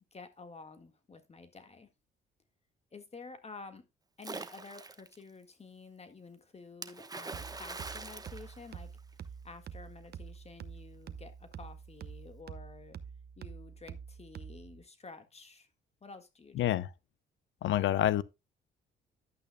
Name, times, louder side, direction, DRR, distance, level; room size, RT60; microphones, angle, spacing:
voice 1, 0.1-1.9 2.9-3.8 4.2-8.9 9.4-13.0 13.4-15.7 16.0-16.8, left 4 dB, 30° left, 1.7 m, -51 dB
Splash splatter, 4.2-5.2 6.8-9.3, right 3 dB, 20° right, 1.0 m, -43 dB
sound 1, 7.3-14.8, right 7 dB, 55° right, 0.8 m, -47 dB
voice 2, 16.6-16.9 17.6-18.2, left 12 dB, 75° left, 0.7 m, -27 dB
11.5 x 8.6 x 2.2 m
cardioid pair, 90°, 20 cm